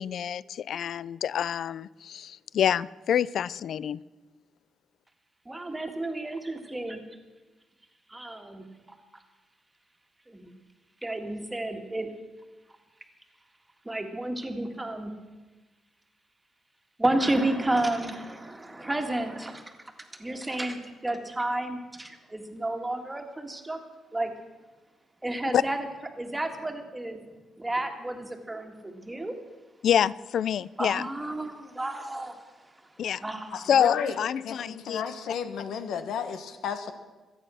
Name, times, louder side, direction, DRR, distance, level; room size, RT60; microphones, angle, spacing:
voice 1, 0.0-4.0 25.5-25.6 29.8-31.1 33.0-33.2 33.7-35.0, left 9 dB, 60° left, 21 dB, 0.4 m, -27 dB
voice 2, 5.5-7.0 8.1-8.7 10.3-10.5 11.0-12.1 13.9-15.1 17.0-19.6 20.2-23.8 24.1-24.3 25.2-25.9 26.2-27.2 27.6-29.3 30.8-32.4 33.2-33.6, right 1 dB, 10° right, 5 dB, 1.8 m, -31 dB
voice 3, 33.5-34.2 34.4-36.9, left 7 dB, 80° left, 9 dB, 1.2 m, -33 dB
25.5 x 9.0 x 6.2 m, 1.2 s
cardioid pair, 150°, 0 cm